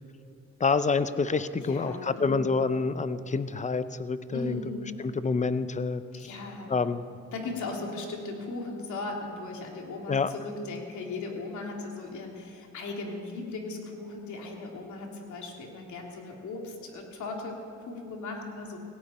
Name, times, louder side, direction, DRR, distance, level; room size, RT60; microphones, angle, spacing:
voice 1, 0.6-4.6 5.0-6.0 6.7-7.0 10.1-10.3, left 4 dB, 25° left, 13 dB, 0.7 m, -27 dB
voice 2, 1.5-2.5 4.3-4.8 6.2-6.7 7.3-18.8, left 3 dB, 70° left, 0 dB, 2.9 m, -37 dB
17.5 x 17.0 x 4.3 m, 2.8 s
cardioid pair, 90°, 30 cm